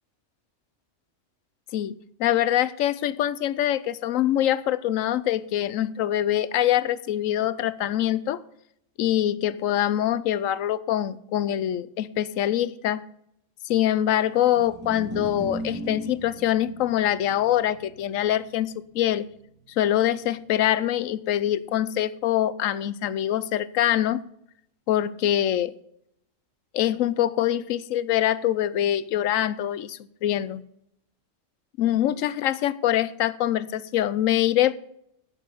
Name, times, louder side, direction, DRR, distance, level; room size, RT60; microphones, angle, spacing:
voice 1, 2.2-8.4 9.0-13.0 13.6-19.3 19.8-24.2 24.9-25.7 26.7-30.6 31.8-34.7, left 12 dB, 90° left, 1.0 m, -24 dB
sound 1, 14.4-20.8, equal, 15° right, 2.0 m, -39 dB
11.0 x 8.4 x 5.5 m
omnidirectional pair, 1.3 m